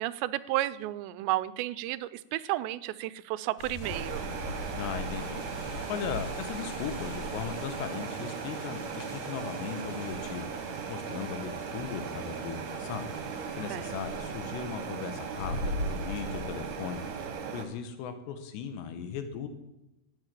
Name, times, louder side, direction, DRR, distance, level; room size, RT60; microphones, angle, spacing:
voice 1, 0.0-4.3 13.7-13.9, right 16 dB, 90° right, 16 dB, 2.8 m, -32 dB
sound 1, 3.6-17.3, left 1 dB, 65° left, 2.7 m, -41 dB
sound 2, 3.8-17.6, right 6 dB, 60° right, 2.4 m, -38 dB
voice 2, 4.7-5.4 5.9-19.5, left 7 dB, 80° left, 8 dB, 3.4 m, -38 dB
12.0 x 7.9 x 9.1 m, 0.94 s
omnidirectional pair, 4.9 m